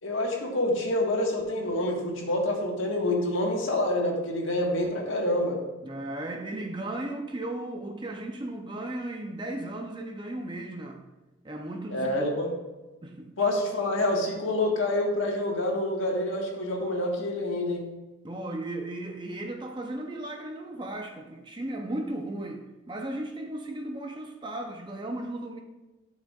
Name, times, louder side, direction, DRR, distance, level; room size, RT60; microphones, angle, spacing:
voice 1, 0.0-5.6 11.9-12.5 13.4-17.9, left 1 dB, 80° left, 0 dB, 1.7 m, -27 dB
voice 2, 5.8-11.0 11.4-12.6 13.0-13.3 18.2-25.6, right 1 dB, 25° right, 3 dB, 0.6 m, -36 dB
12.0 x 6.3 x 2.4 m, 1.1 s
head